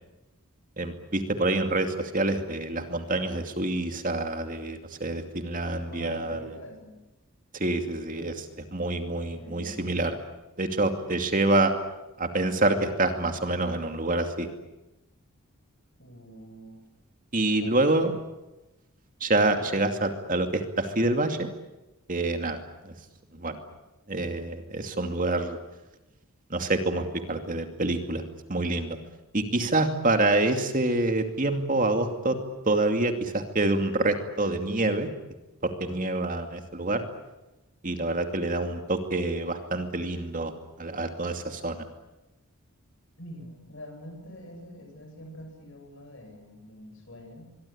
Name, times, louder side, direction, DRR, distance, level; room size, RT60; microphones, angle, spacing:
voice 1, 0.8-6.4 7.5-10.2 10.6-11.7 12.2-14.5 17.3-18.1 19.2-21.5 22.1-22.6 22.8-22.9 23.3-23.6 24.1-25.6 26.5-28.2 28.5-29.0 29.3-32.4 32.6-35.1 35.6-37.0 37.8-40.5 40.8-41.8, right 2 dB, 35° right, 6 dB, 2.5 m, -27 dB
voice 2, 5.7-7.0 9.1-9.8 16.0-16.8 17.4-18.1 43.2-47.6, left 1 dB, 55° left, 5 dB, 7.9 m, -45 dB
25.0 x 23.5 x 8.8 m, 1.0 s
head